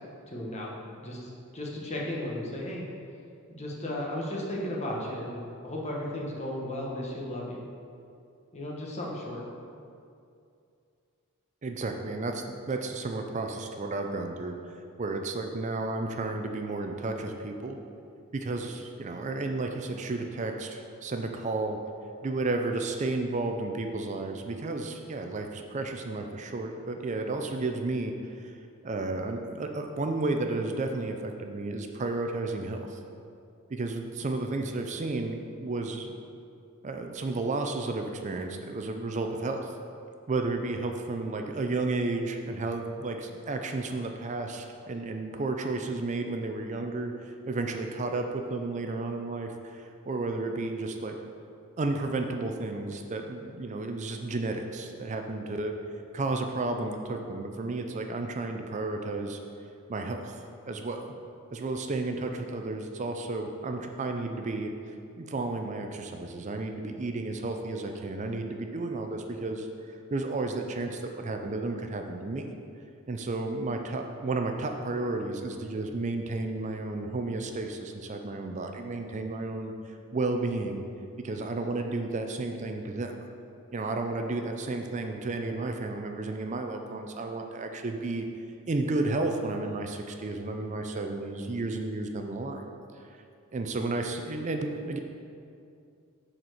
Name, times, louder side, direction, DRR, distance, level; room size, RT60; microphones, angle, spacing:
voice 1, 0.3-2.8 3.5-7.6 8.5-9.4, left 1 dB, 30° left, -3 dB, 1.2 m, -35 dB
voice 2, 11.6-14.5 15.0-17.8 18.3-21.8 22.2-28.5 28.8-33.0 33.7-36.1 36.8-39.7 40.3-51.2 51.8-55.7 56.1-59.4 59.9-61.1 61.5-64.7 65.2-72.5 73.1-80.8 81.2-83.1 83.7-88.3 88.7-92.7 93.5-95.0, right 2 dB, 35° right, 4 dB, 0.4 m, -32 dB
6.6 x 4.4 x 6.3 m, 2.5 s
head